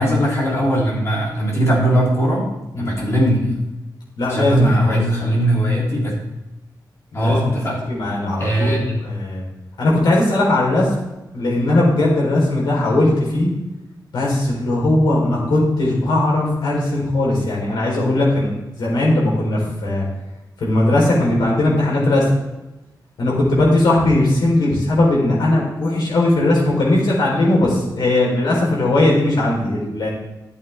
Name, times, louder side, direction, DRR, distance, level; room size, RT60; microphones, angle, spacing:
voice 1, 0.0-2.5 2.8-3.5 4.3-6.1 7.1-7.9 8.4-8.8, right 1 dB, 40° left, -5 dB, 3.1 m, -19 dB
voice 2, 4.2-5.0 7.1-7.4 7.9-9.4 9.8-10.9 11.3-13.5 14.1-18.5 18.8-20.0 20.6-22.2 23.2-30.1, left 1 dB, 85° left, -4 dB, 3.8 m, -18 dB
12.5 x 8.2 x 3.5 m, 1.0 s
wide cardioid pair, 175°, 8 cm